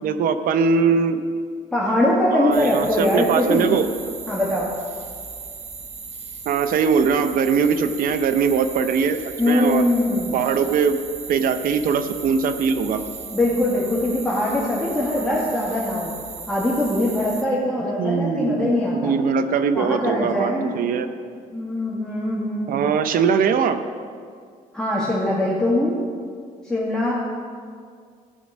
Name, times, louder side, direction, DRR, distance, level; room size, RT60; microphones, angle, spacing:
voice 1, 0.0-1.2 2.3-3.9 6.5-9.8 10.3-11.0 11.3-13.0 18.0-21.1 22.7-23.8, right 6 dB, 70° right, 9 dB, 0.7 m, -21 dB
voice 2, 1.7-3.7 4.3-4.7 9.4-10.4 13.3-16.1 16.5-19.2 19.7-20.7 21.5-23.2 24.7-26.0 26.6-27.1, left 1 dB, 5° left, -7 dB, 1.9 m, -22 dB
sound 1, 2.5-17.4, right 5 dB, 45° right, 1.1 m, -37 dB
15.0 x 5.2 x 6.2 m, 2.1 s
cardioid pair, 95°, 15 cm